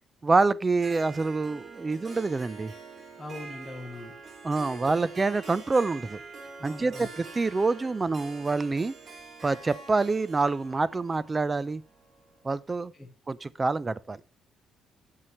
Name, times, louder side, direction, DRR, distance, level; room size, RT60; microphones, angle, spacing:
voice 1, 0.2-2.7 4.4-6.2 6.6-8.9 9.4-11.8 12.4-12.9 13.3-14.2, right 3 dB, 25° right, 0.6 m, -26 dB
Harp, 0.7-12.6, right 4 dB, 50° right, 3.3 m, -46 dB
voice 2, 3.2-4.1 4.7-5.0 6.6-7.1 12.9-13.1, left 1 dB, 10° left, 2.2 m, -41 dB
12.0 x 7.5 x 3.1 m
cardioid pair, 90°, 0 cm